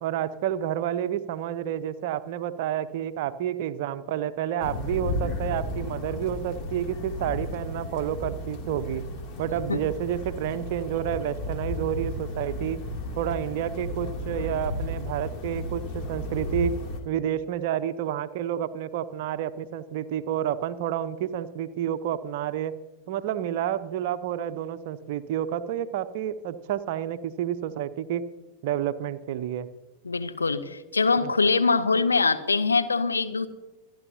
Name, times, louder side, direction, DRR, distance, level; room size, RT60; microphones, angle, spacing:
voice 1, 0.0-9.1 9.4-12.8 13.2-16.7 17.0-22.8 23.1-28.2 28.6-29.7 31.2-31.3, right 10 dB, 50° right, 13 dB, 0.9 m, -29 dB
sound 1, 4.6-17.0, left 1 dB, 35° left, 2.8 m, -34 dB
voice 2, 30.0-33.5, left 4 dB, 75° left, 9 dB, 1.0 m, -23 dB
26.0 x 11.0 x 2.8 m, 1.1 s
figure-of-eight pair, 90°, 0 cm